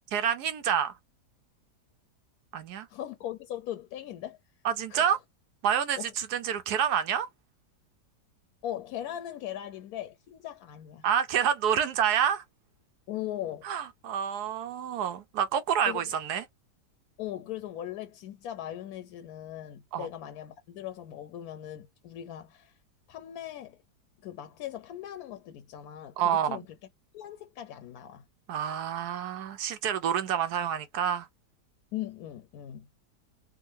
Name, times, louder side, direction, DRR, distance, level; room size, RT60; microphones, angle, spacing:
voice 1, 0.1-0.9 2.5-2.9 4.6-5.2 5.6-7.3 11.0-12.4 13.6-16.4 19.9-20.1 26.2-26.6 28.5-31.3, right 8 dB, 75° right, 1.1 m, -28 dB
voice 2, 2.9-4.4 4.9-5.2 6.0-6.1 8.6-11.1 13.1-13.7 15.9-16.0 17.2-22.8 23.1-23.8 24.2-26.6 27.1-28.2 31.9-32.9, left 12 dB, 70° left, 1.0 m, -39 dB
3.6 x 2.2 x 2.8 m
omnidirectional pair, 1.8 m